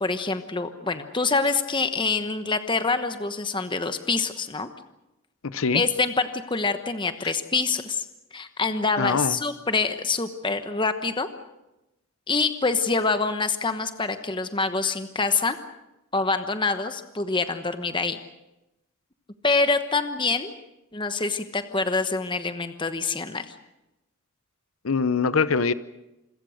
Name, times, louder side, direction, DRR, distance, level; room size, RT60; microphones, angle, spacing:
voice 1, 0.0-4.7 5.7-8.1 8.3-11.3 12.3-15.6 16.1-18.2 19.4-20.5 20.9-23.4, left 4 dB, 20° left, 9 dB, 1.1 m, -25 dB
voice 2, 5.4-5.8 9.0-9.4 24.8-25.7, left 5 dB, 70° left, 15 dB, 0.8 m, -23 dB
27.0 x 22.0 x 6.4 m, 0.95 s
head